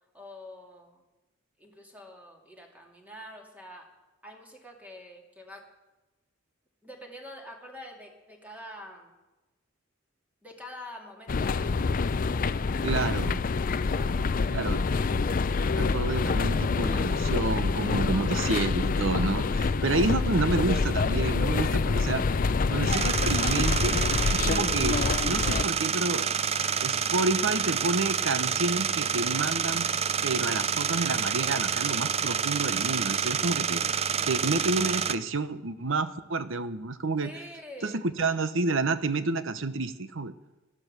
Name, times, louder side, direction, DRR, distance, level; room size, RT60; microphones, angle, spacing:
voice 1, 0.1-1.0 1.6-3.9 4.2-5.6 6.8-9.1 10.4-13.2 18.1-18.6 20.1-20.2 37.2-38.0, left 1 dB, 10° right, 1 dB, 2.5 m, -46 dB
sound 1, 11.3-25.6, left 4 dB, 45° left, 0.4 m, -26 dB
voice 2, 12.8-13.4 14.5-14.8 15.8-22.2 22.7-24.0 24.3-26.3 26.8-29.9 30.2-33.8 34.3-37.3 37.8-40.3, right 3 dB, 70° right, 12 dB, 0.9 m, -29 dB
sound 2, 22.9-35.2, right 7 dB, 30° right, 0.5 m, -28 dB
13.5 x 12.0 x 6.7 m, 1.1 s
head